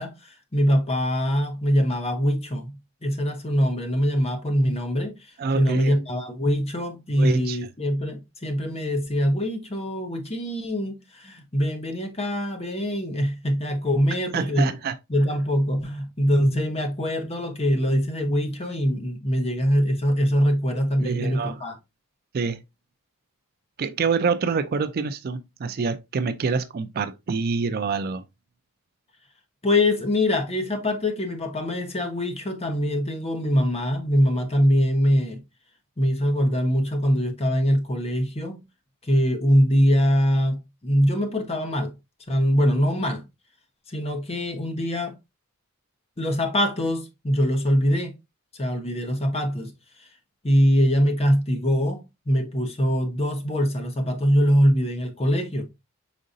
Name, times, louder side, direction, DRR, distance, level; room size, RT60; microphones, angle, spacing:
voice 1, 0.0-14.7 15.1-21.8 29.6-35.4 36.0-38.6 39.0-41.9 42.3-43.2 43.9-45.2 46.2-48.1 48.5-49.7 50.0-50.1 50.4-55.6, equal, 25° left, 0.9 m, -23 dB
voice 2, 5.4-6.0 7.2-7.6 14.3-15.0 21.0-21.6 22.3-22.6 23.8-28.2, right 5 dB, 45° right, 0.4 m, -26 dB
5.1 x 3.7 x 2.6 m
head